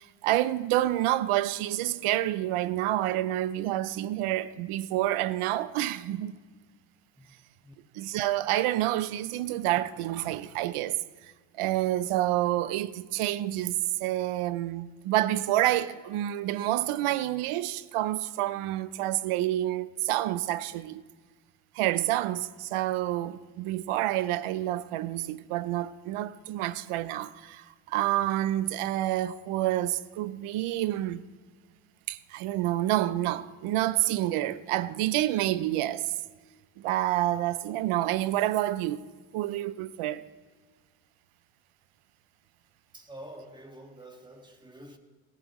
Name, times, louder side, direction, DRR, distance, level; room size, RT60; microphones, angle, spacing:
voice 1, 0.0-6.3 7.9-11.0 11.2-11.3 11.6-21.0 21.7-31.2 32.1-36.1 36.8-39.0 39.3-40.2, right 14 dB, 85° right, 0.6 m, -28 dB
voice 2, 42.9-45.0, right 1 dB, 10° right, 1.9 m, -47 dB
17.5 x 15.0 x 3.1 m
cardioid pair, 65°, 49 cm